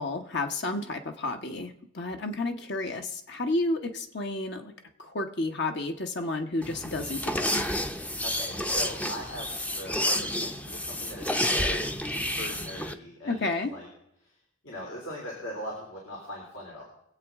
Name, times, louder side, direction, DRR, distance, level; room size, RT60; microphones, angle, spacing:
voice 1, 0.0-4.7 5.0-7.5 13.2-13.7, left 2 dB, 60° left, 5 dB, 1.1 m, -31 dB
sound 1, 6.6-12.9, left 1 dB, 5° left, 0.6 m, -30 dB
voice 2, 8.2-13.9 14.2-14.3 14.6-16.8, equal, 80° left, -3 dB, 3.7 m, -40 dB
23.5 x 8.2 x 3.6 m, 0.78 s
head